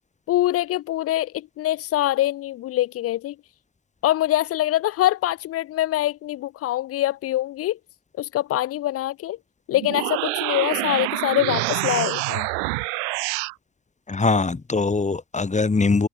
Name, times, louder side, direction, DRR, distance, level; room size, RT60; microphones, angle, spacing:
voice 1, 0.3-3.3 4.0-7.8 8.2-9.4 9.7-12.5, left 14 dB, 30° left, 0.6 m, -24 dB
sound 1, 9.7-13.5, right 40 dB or more, 60° right, 1.2 m, -26 dB
voice 2, 14.1-16.1, left 4 dB, 15° left, 2.4 m, -22 dB
figure-of-eight pair, 65°, 46 cm